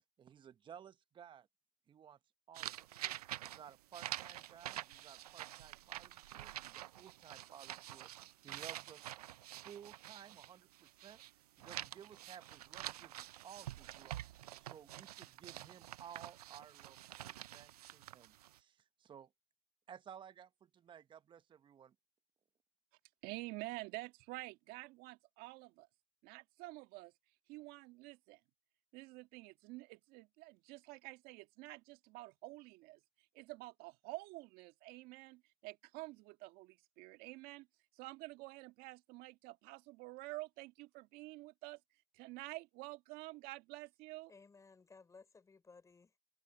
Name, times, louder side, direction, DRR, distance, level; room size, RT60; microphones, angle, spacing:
voice 1, 0.2-1.5 1.9-2.2 2.5-2.7 3.4-8.2 8.4-9.1 9.6-19.3 19.9-21.9, right 8 dB, 25° right, 1.0 m, -56 dB
sound 1, 2.5-11.3 11.6-18.6, right 13 dB, 90° right, 0.4 m, -48 dB
voice 2, 23.2-25.9 26.2-27.1 27.5-28.4 28.9-33.0 33.3-37.7 37.9-41.8 42.1-44.3, right 21 dB, 55° right, 1.6 m, -49 dB
voice 3, 44.3-46.2, left 4 dB, 15° left, 4.7 m, -60 dB
hypercardioid pair, 105°, 19 cm